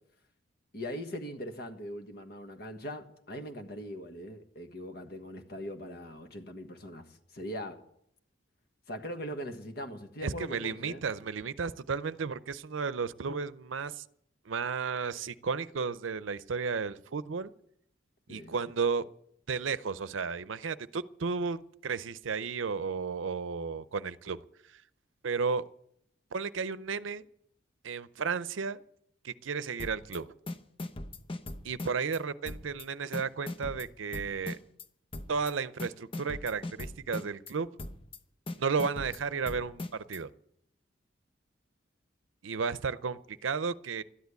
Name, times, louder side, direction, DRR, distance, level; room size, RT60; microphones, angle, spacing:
voice 1, 0.7-7.8 8.9-11.1 18.3-18.5, equal, 55° left, 1.5 m, -41 dB
voice 2, 10.2-14.0 14.5-17.5 18.3-19.0 19.5-24.4 24.7-24.8 25.2-25.6 26.3-27.3 27.8-28.8 29.2-30.3 31.6-34.6 35.3-37.7 38.6-40.3 42.4-44.0, right 5 dB, 85° right, 0.6 m, -33 dB
sound 1, 29.8-30.2 30.5-32.2 32.5-32.8 33.1-34.8 35.1-35.5 35.8-37.5 37.8-38.2 38.5-40.2, left 2 dB, 30° left, 0.8 m, -39 dB
13.0 x 10.5 x 8.2 m
head